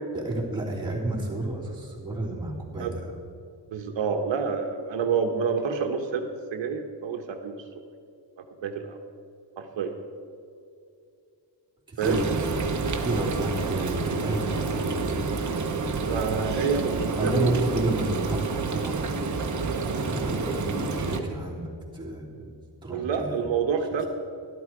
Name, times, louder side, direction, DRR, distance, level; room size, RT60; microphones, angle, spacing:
voice 1, 0.1-3.1 11.9-12.4 13.0-15.2 17.1-19.7 19.9-22.5 22.8-23.5, right 2 dB, 10° right, -6 dB, 3.2 m, -31 dB
voice 2, 3.7-7.6 8.4-9.0 9.6-10.0 12.0-12.2 16.1-17.7 22.9-24.0, right 6 dB, 85° right, 4 dB, 1.1 m, -28 dB
Frying (food), 12.0-21.2, right 4 dB, 40° right, 1.0 m, -29 dB
12.0 x 12.0 x 4.8 m, 2.5 s
wide cardioid pair, 115°, 44 cm